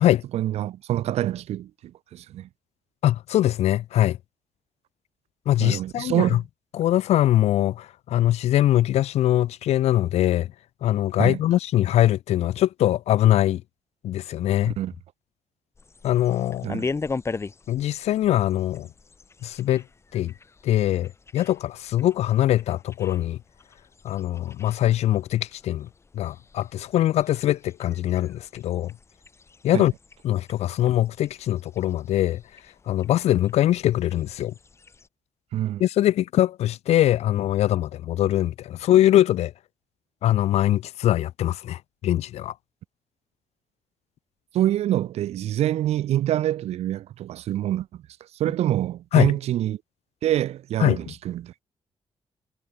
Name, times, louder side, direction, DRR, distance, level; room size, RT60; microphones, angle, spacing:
voice 1, 0.3-2.5 5.6-6.4 11.2-11.4 14.8-14.9 16.6-16.9 29.7-29.9 35.5-35.8 44.5-48.0 48.4-49.8 50.2-51.5, right 12 dB, 85° right, 0.7 m, -26 dB
voice 2, 3.0-4.2 5.5-6.4 6.7-10.5 10.8-13.6 14.0-14.8 16.0-16.7 17.7-18.9 19.4-19.8 20.1-20.3 20.6-23.4 24.0-25.9 26.1-28.9 29.6-29.9 30.2-32.4 32.9-34.5 35.8-39.5 40.2-42.5 49.1-49.3 50.8-51.1, left 13 dB, 90° left, 0.7 m, -22 dB
sound 1, 15.7-35.1, left 4 dB, 25° left, 4.3 m, -40 dB
cardioid pair, 145°, 11 cm